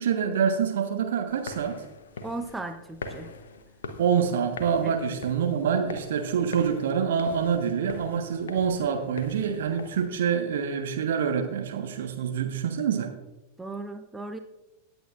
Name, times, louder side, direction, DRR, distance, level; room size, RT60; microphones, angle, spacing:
voice 1, 0.0-1.8 4.0-13.1, right 7 dB, 60° right, 5 dB, 1.3 m, -26 dB
sound 1, 1.3-10.1, left 4 dB, 65° left, 0.9 m, -42 dB
voice 2, 2.2-3.3 4.8-4.9 13.6-14.4, right 2 dB, 10° right, 7 dB, 0.7 m, -36 dB
17.0 x 8.7 x 2.5 m, 0.97 s
figure-of-eight pair, 90°, 0 cm